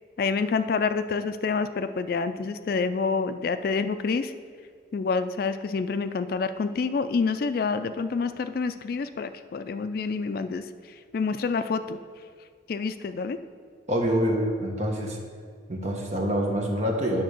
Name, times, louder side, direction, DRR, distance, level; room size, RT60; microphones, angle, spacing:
voice 1, 0.2-4.3 4.9-10.7 11.1-12.0 12.7-13.4, left 4 dB, 50° left, 10 dB, 0.3 m, -27 dB
voice 2, 13.9-15.2 15.7-17.2, equal, 40° right, 1 dB, 1.1 m, -26 dB
8.6 x 3.8 x 6.3 m, 2.1 s
head